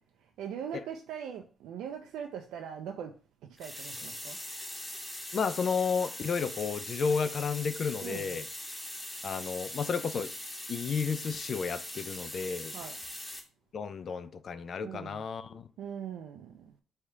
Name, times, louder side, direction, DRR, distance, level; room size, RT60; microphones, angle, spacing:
voice 1, 0.2-3.2 3.6-4.4 8.0-8.4 12.7-13.0 14.8-15.2 15.8-16.7, right 8 dB, 85° right, 0.4 m, -41 dB
sound 1, 3.6-13.4, left 1 dB, 20° left, 1.4 m, -41 dB
voice 2, 5.3-8.5 9.2-10.3 10.7-12.7 13.7-15.7, left 5 dB, 55° left, 0.3 m, -32 dB
3.3 x 2.7 x 4.6 m
cardioid pair, 90°, 0 cm